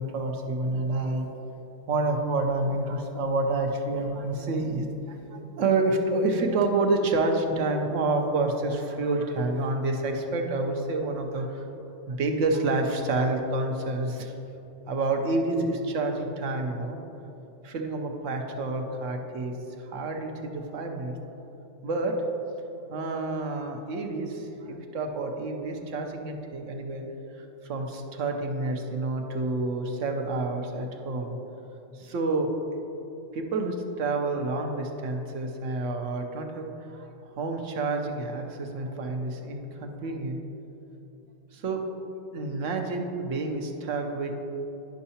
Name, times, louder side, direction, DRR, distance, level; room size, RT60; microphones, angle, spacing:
voice 1, 0.0-1.4 1.9-11.7 12.1-14.3 14.8-17.0 17.6-21.2 21.8-22.1 22.9-27.0 27.3-31.3 31.9-32.5 33.3-40.4 41.5-41.8 42.3-44.3, right 2 dB, 80° right, 3 dB, 1.1 m, -29 dB
10.5 x 5.5 x 2.8 m, 2.9 s
omnidirectional pair, 1.3 m